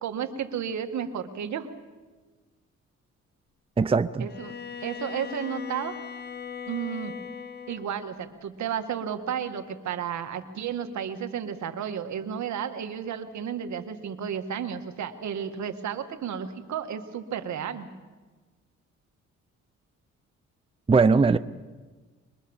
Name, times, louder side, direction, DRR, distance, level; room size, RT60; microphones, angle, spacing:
voice 1, 0.0-1.7 4.2-4.5 4.8-5.9 6.7-7.1 7.7-17.9, right 8 dB, 65° right, 8 dB, 2.1 m, -32 dB
voice 2, 3.8-4.3 20.9-21.4, right 4 dB, 20° right, 13 dB, 0.6 m, -20 dB
Bowed string instrument, 4.3-8.0, left 7 dB, 35° left, 1.0 m, -39 dB
24.5 x 21.5 x 7.3 m, 1.3 s
cardioid pair, 90°, 30 cm